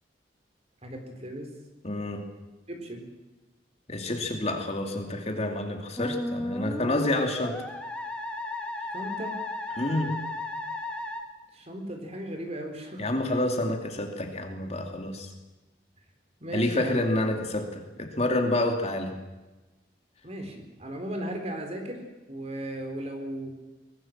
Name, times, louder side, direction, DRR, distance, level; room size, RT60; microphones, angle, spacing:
voice 1, 0.8-1.5 2.7-3.1 8.9-9.4 11.5-13.5 16.4-17.0 20.2-23.6, right 1 dB, 40° right, 4 dB, 4.1 m, -36 dB
voice 2, 1.8-2.3 3.9-7.6 9.8-10.2 13.0-15.3 16.5-19.2, left 1 dB, 35° left, 4 dB, 2.8 m, -28 dB
Musical instrument, 6.0-11.2, left 2 dB, 5° left, 2.0 m, -34 dB
23.0 x 20.5 x 7.4 m, 1.1 s
head